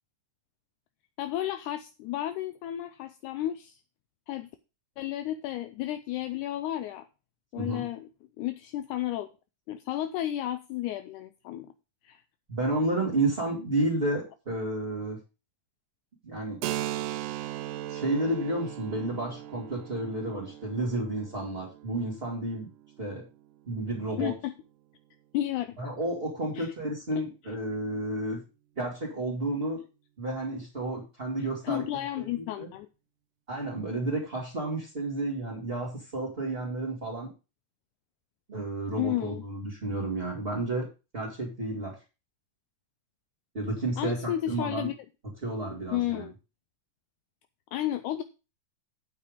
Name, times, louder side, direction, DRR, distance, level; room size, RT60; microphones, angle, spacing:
voice 1, 1.2-3.8 4.3-4.5 5.0-7.1 7.5-8.1 8.4-9.3 9.7-11.7 12.0-12.2 17.3-17.5 24.2-24.5 25.3-25.9 26.6-26.7 27.2-27.3 31.6-32.9 39.0-39.4 44.0-44.9 45.9-46.3 47.7-48.2, left 13 dB, 80° left, 10 dB, 2.0 m, -32 dB
voice 2, 12.5-15.2 16.2-16.6 17.9-22.7 23.0-23.2 23.7-24.3 25.8-28.4 28.8-29.8 30.2-31.8 32.2-32.7 33.5-37.3 38.5-40.9 41.1-42.0 43.5-44.9 45.4-46.3, right 2 dB, 20° right, -4 dB, 2.4 m, -31 dB
Keyboard (musical), 16.6-24.0, right 14 dB, 85° right, 2.2 m, -38 dB
8.6 x 7.1 x 5.0 m, 0.30 s
omnidirectional pair, 3.7 m